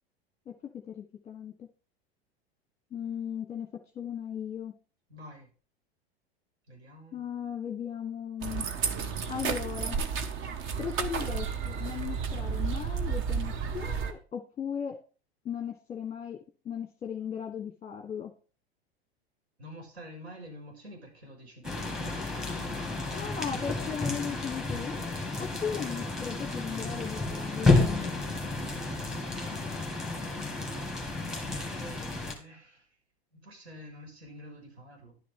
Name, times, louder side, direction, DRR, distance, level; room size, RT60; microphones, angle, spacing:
voice 1, 0.5-1.7 2.9-3.7 3.9-4.7 7.1-8.7 9.3-10.0 10.8-15.0 15.4-16.4 16.6-18.3 23.1-24.9 25.4-27.7, left 8 dB, 20° left, 4 dB, 1.4 m, -37 dB
voice 2, 5.1-5.5 6.7-7.2 19.6-23.6 31.4-32.9 33.3-35.2, equal, 80° right, 1 dB, 5.8 m, -48 dB
sound 1, 8.4-14.1, right 6 dB, 40° right, 1.3 m, -32 dB
sound 2, 21.6-32.3, left 3 dB, ahead, 2.5 m, -31 dB
11.5 x 9.2 x 3.8 m, 0.37 s
hypercardioid pair, 95°, 32 cm